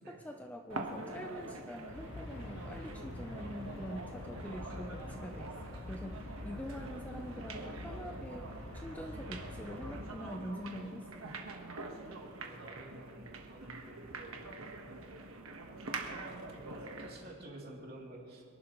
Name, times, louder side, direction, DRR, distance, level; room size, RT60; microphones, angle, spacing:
voice 1, 0.0-11.3, equal, 5° left, 3 dB, 0.5 m, -45 dB
sound 1, 0.7-17.2, right 3 dB, 80° right, 1.4 m, -45 dB
Aircraft, 1.9-10.2, left 1 dB, 55° left, 1.0 m, -46 dB
voice 2, 12.4-14.4 14.8-15.0 16.0-18.4, right 1 dB, 45° right, -3 dB, 3.0 m, -51 dB
26.0 x 11.5 x 3.1 m, 2.3 s
head